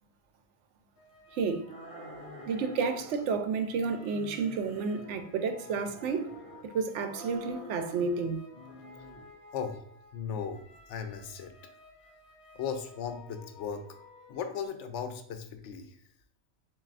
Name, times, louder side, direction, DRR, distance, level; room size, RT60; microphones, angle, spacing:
sound 1, 1.0-14.7, left 3 dB, 55° left, 0.9 m, -55 dB
voice 1, 1.3-1.6 2.5-6.3 6.6-8.4, right 5 dB, 85° right, 0.9 m, -31 dB
sound 2, 1.6-3.4 3.7-5.2 5.6-6.7 7.1-8.3 8.5-9.3, right 1 dB, 35° right, 0.8 m, -48 dB
voice 2, 9.5-9.8 10.1-11.5 12.5-13.9 14.3-16.0, left 7 dB, 85° left, 0.9 m, -37 dB
7.3 x 2.6 x 2.4 m
omnidirectional pair, 1.2 m